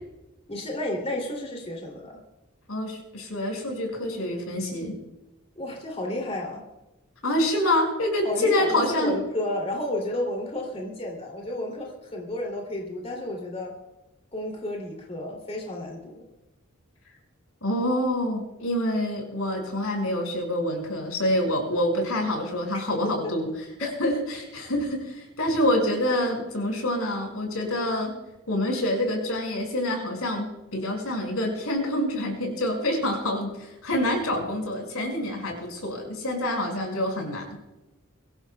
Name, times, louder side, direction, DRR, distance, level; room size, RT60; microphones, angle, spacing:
voice 1, 0.5-2.2 5.6-6.6 8.2-13.7 14.3-16.2, left 1 dB, 30° left, -1 dB, 2.9 m, -32 dB
voice 2, 2.7-5.0 7.2-9.1 17.6-23.5 23.8-28.2 28.5-37.5, left 1 dB, 90° left, 1 dB, 5.8 m, -26 dB
23.5 x 16.5 x 2.3 m, 1.0 s
head